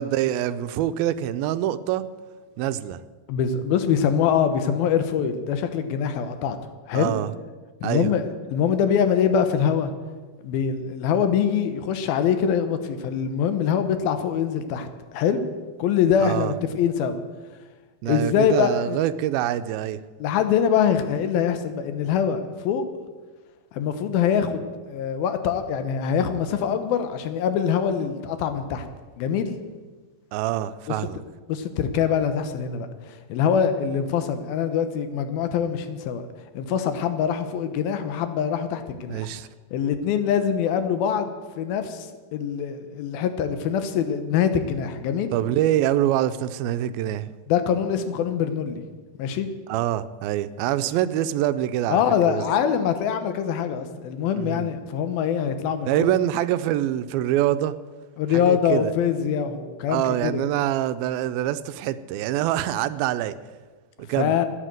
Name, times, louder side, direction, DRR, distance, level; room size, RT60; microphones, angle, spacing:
voice 1, 0.0-2.0 2.6-3.0 6.9-7.3 7.8-8.1 16.2-16.5 18.0-20.0 30.3-31.2 39.1-39.5 45.3-47.3 49.7-52.4 54.3-54.7 55.9-57.7 58.3-58.9 59.9-63.3 64.0-64.4, right 12 dB, 85° right, 13 dB, 2.4 m, -25 dB
voice 2, 3.3-6.6 6.9-7.1 7.8-9.9 10.4-14.9 15.1-15.5 15.8-17.2 18.0-19.0 20.2-22.8 23.7-28.9 29.2-29.6 31.5-36.2 36.5-39.3 39.7-41.3 41.6-45.3 47.5-48.8 49.2-49.5 51.9-56.1 58.2-60.5 64.2-64.5, left 8 dB, 80° left, 9 dB, 2.9 m, -24 dB
14.5 x 9.9 x 7.6 m, 1.3 s
omnidirectional pair, 4.2 m